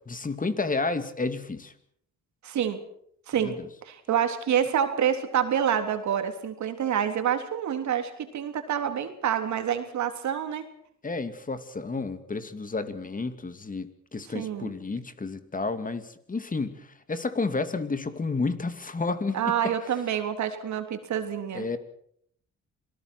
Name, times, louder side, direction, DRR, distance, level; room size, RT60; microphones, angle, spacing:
voice 1, 0.1-1.7 3.4-3.7 11.0-19.4 21.5-21.8, left 3 dB, 25° left, 10 dB, 2.6 m, -31 dB
voice 2, 2.4-2.8 3.3-3.6 3.8-10.7 14.3-14.7 19.3-21.6, right 9 dB, 70° right, 7 dB, 3.5 m, -27 dB
27.0 x 19.0 x 6.3 m, 0.67 s
cardioid pair, 90°, 30 cm